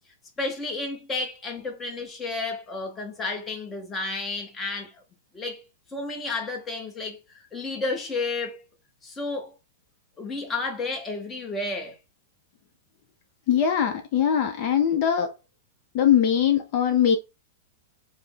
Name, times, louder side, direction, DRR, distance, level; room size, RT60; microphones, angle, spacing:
voice 1, 0.4-4.9 5.3-5.6 5.9-7.2 7.5-8.6 9.0-9.5 10.2-12.0, left 3 dB, 15° left, 0.8 m, -31 dB
voice 2, 13.5-15.3 15.9-17.2, left 9 dB, 45° left, 0.5 m, -21 dB
3.5 x 2.0 x 3.4 m
hypercardioid pair, 145°, 0 cm